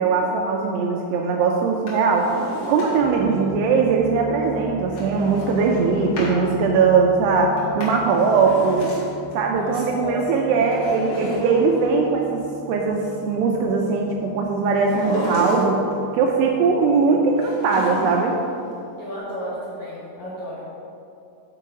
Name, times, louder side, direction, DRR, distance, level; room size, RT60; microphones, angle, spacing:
voice 1, 0.0-2.3 2.7-8.9 9.3-15.8 16.1-18.4, right 4 dB, 85° right, 1 dB, 2.5 m, -20 dB
Drawer open or close, 1.7-3.2 4.9-6.4 7.6-9.3 10.6-12.2 14.7-15.9 17.4-18.5 18.7-18.8, right 1 dB, 50° left, 1.6 m, -32 dB
sound 1, 3.0-17.4, right 2 dB, 55° right, 1.6 m, -40 dB
voice 2, 3.1-3.5 9.5-10.7 16.4-16.6 19.0-20.6, equal, 75° left, -8 dB, 1.7 m, -33 dB
10.0 x 4.6 x 4.8 m, 2.7 s
omnidirectional pair, 5.3 m